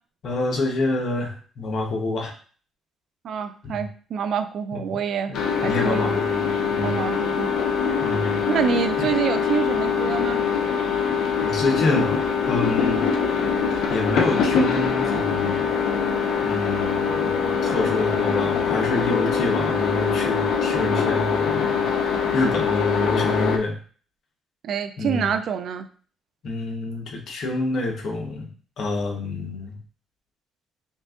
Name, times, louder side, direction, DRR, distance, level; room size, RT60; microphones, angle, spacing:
voice 1, 0.2-2.3 3.6-3.8 4.7-5.0 5.3-7.0 8.0-8.4 9.0-9.1 11.0-13.1 13.7-15.7 16.4-21.9 22.3-23.8 25.0-25.3 26.4-28.5 28.8-29.8, left 2 dB, 65° left, 2 dB, 1.0 m, -27 dB
voice 2, 3.2-6.2 6.8-7.5 8.5-10.4 24.6-25.9, right 7 dB, 65° right, 9 dB, 0.4 m, -26 dB
sound 1, 5.3-23.6, left 6 dB, 80° left, 0.6 m, -23 dB
5.3 x 2.5 x 2.5 m, 0.41 s
cardioid pair, 90°, 0 cm